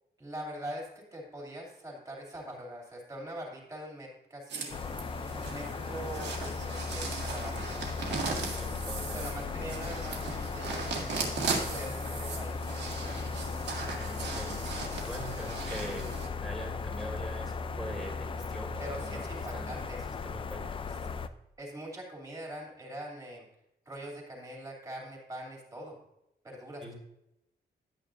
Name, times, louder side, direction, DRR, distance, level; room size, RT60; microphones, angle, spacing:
voice 1, 0.2-4.7 5.3-8.3 9.0-10.8 11.3-13.2 18.8-20.0 21.6-23.5 23.8-26.0 26.4-26.9, right 1 dB, 20° right, -1 dB, 2.7 m, -43 dB
sound 1, 4.5-16.3, right 4 dB, 75° right, 1.8 m, -38 dB
sound 2, 4.7-21.3, left 4 dB, 30° left, 0.4 m, -37 dB
voice 2, 8.3-9.3 13.9-16.1 16.4-19.7 20.2-20.8 26.8-26.9, right 1 dB, ahead, -1 dB, 2.5 m, -43 dB
11.5 x 9.1 x 2.5 m, 0.85 s
wide cardioid pair, 170°, 18 cm